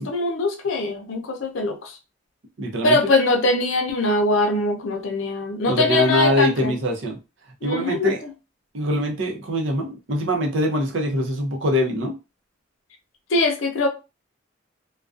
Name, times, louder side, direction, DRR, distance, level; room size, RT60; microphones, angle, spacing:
voice 1, 0.0-2.0 2.8-6.7 7.6-8.1 13.3-13.9, left 2 dB, 80° left, 0.6 m, -22 dB
voice 2, 2.6-3.0 5.7-7.2 7.6-8.2 8.7-12.2, equal, 70° right, 0.7 m, -23 dB
2.3 x 2.2 x 2.4 m
head